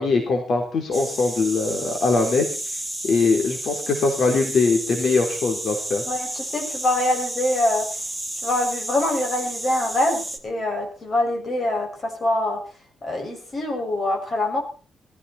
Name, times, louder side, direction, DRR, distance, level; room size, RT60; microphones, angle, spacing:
voice 1, 0.0-2.5 3.0-6.0, left 4 dB, 55° left, 2 dB, 3.7 m, -21 dB
sound 1, 0.9-10.4, right 1 dB, ahead, 2.6 m, -32 dB
voice 2, 6.1-7.9 8.4-12.6 13.0-14.6, left 1 dB, 30° left, 3 dB, 6.3 m, -24 dB
19.0 x 15.0 x 4.4 m, 0.37 s
wide cardioid pair, 140°, 0 cm